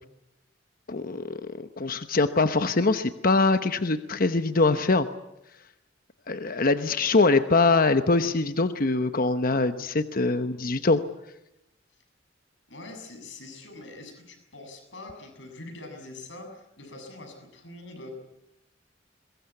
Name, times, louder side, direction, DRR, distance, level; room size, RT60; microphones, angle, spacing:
voice 1, 0.9-1.4 1.8-5.1 6.3-11.0, left 3 dB, 50° left, 10 dB, 1.0 m, -23 dB
voice 2, 12.7-18.2, left 2 dB, 70° left, 4 dB, 7.4 m, -43 dB
23.0 x 21.5 x 8.4 m, 0.88 s
head